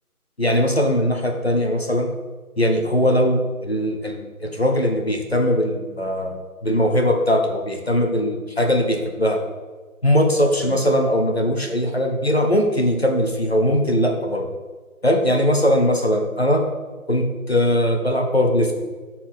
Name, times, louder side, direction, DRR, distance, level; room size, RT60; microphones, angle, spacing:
voice 1, 0.4-2.1 2.6-9.4 10.0-14.5 15.0-16.6 17.1-18.7, equal, 45° left, 3 dB, 0.8 m, -20 dB
6.1 x 4.2 x 6.1 m, 1.4 s
figure-of-eight pair, 170°, 43 cm